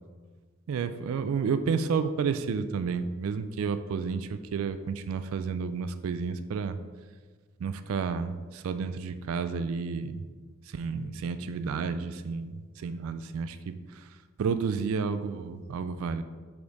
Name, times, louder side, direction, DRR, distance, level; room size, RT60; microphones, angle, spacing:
voice 1, 0.7-6.8 7.6-10.2 10.7-14.1 14.4-16.2, right 5 dB, 70° right, 11 dB, 0.3 m, -31 dB
5.6 x 4.2 x 4.0 m, 1.5 s
head